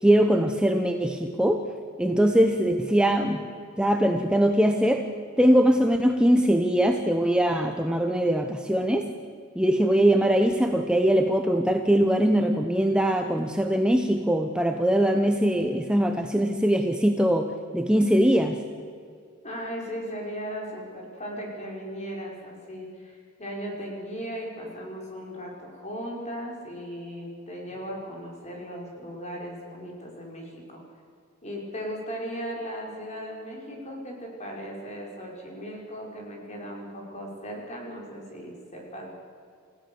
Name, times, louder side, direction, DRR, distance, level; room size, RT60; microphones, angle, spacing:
voice 1, 0.0-1.7 2.0-3.4 3.8-5.1 5.4-9.1 9.5-18.6, right 1 dB, 5° right, 4 dB, 0.9 m, -22 dB
voice 2, 19.4-30.8 31.4-39.1, equal, 35° left, -1 dB, 5.3 m, -37 dB
28.5 x 16.0 x 7.1 m, 2.2 s
head